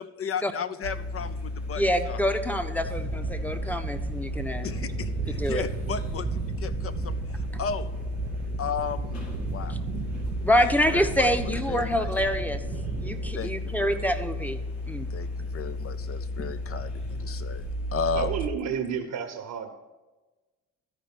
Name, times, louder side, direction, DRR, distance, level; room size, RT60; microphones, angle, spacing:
voice 1, 0.0-2.2 4.6-7.9 8.6-9.2 9.5-9.7 10.6-11.3 11.7-12.1 13.3-14.1 15.1-17.7 17.9-18.4, left 6 dB, 40° left, 12 dB, 0.8 m, -34 dB
sound 1, 0.8-18.5, left 2 dB, 80° left, 2.0 m, -34 dB
voice 2, 1.7-4.7 5.4-5.6 10.4-12.6 13.0-14.6 14.9-15.1, equal, 5° left, 7 dB, 1.0 m, -26 dB
sound 2, 2.8-13.3, right 9 dB, 35° right, 0.4 m, -36 dB
voice 3, 18.1-19.7, right 7 dB, 65° right, 4 dB, 1.1 m, -31 dB
13.0 x 5.1 x 6.0 m, 1.2 s
hypercardioid pair, 50°, 34 cm